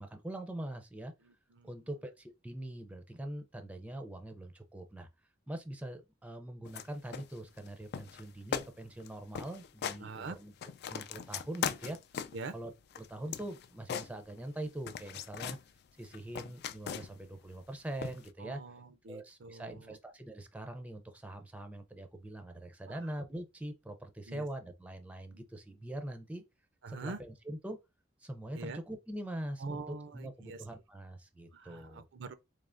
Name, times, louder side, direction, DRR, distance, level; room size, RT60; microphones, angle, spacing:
voice 1, 0.0-1.1 1.6-5.1 5.5-10.5 10.9-12.0 12.5-15.6 16.0-18.6 19.1-26.4 26.9-27.8 28.2-32.0, right 1 dB, 5° right, 0.5 m, -43 dB
voice 2, 1.2-1.8 10.0-10.4 12.3-12.5 18.4-20.0 22.9-23.1 24.3-24.5 25.3-25.4 26.8-27.2 28.5-28.8 29.6-30.6 31.5-32.3, right 3 dB, 65° right, 0.5 m, -44 dB
sound 1, 6.7-6.9 7.1-7.7 7.9-8.2 8.5-8.7 9.0-9.1 9.3-10.0 10.4-12.5 12.9-14.6 14.9-15.6 16.0-17.3 18.0-18.3, left 8 dB, 55° left, 0.3 m, -39 dB
3.8 x 3.3 x 2.5 m
head